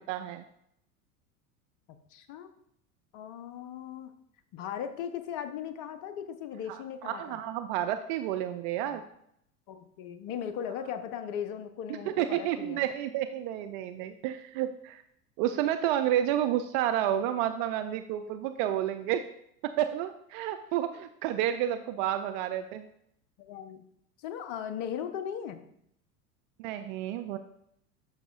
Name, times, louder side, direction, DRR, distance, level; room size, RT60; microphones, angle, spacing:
voice 1, 0.1-0.4 6.7-9.0 12.1-15.0 15.4-19.2 19.6-22.9 26.6-27.4, right 11 dB, 35° right, 8 dB, 0.4 m, -30 dB
voice 2, 2.1-2.5 3.1-4.1 4.5-7.4 8.8-9.0 9.7-12.9 23.4-23.8 24.2-25.7, left 8 dB, 40° left, 9 dB, 0.9 m, -38 dB
11.0 x 6.0 x 2.4 m, 0.73 s
figure-of-eight pair, 80°, 45 cm